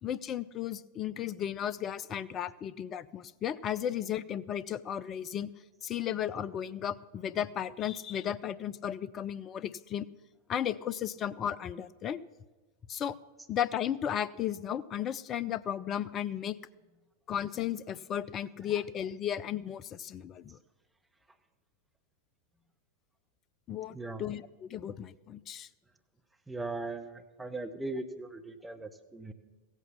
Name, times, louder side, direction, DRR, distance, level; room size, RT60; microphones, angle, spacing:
voice 1, 0.0-5.5 5.8-10.1 10.5-12.2 12.9-13.2 13.5-16.6 17.3-20.6 23.7-25.7, left 10 dB, 30° left, 17 dB, 0.4 m, -34 dB
voice 2, 23.9-24.2 26.5-29.3, right 2 dB, 5° right, 6 dB, 0.9 m, -39 dB
15.5 x 8.1 x 6.9 m, 1.2 s
figure-of-eight pair, 90°, 0 cm